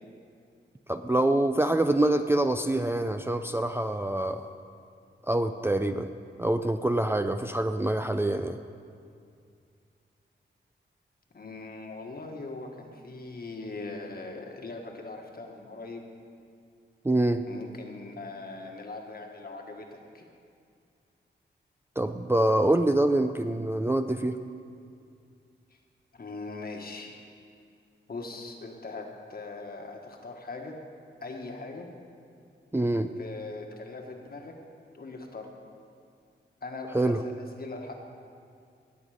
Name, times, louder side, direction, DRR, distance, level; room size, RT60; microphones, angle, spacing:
voice 1, 0.9-4.5 5.3-6.1 6.4-8.6 17.0-17.4 22.0-24.4 32.7-33.1 36.9-37.2, right 1 dB, 10° right, 7 dB, 0.4 m, -25 dB
voice 2, 11.3-16.0 17.5-20.2 26.1-27.2 28.1-30.8 31.2-31.9 33.2-34.5 34.9-35.5 36.6-37.9, left 3 dB, 55° left, 2 dB, 1.5 m, -40 dB
18.0 x 7.7 x 5.0 m, 2.3 s
wide cardioid pair, 90°, 19 cm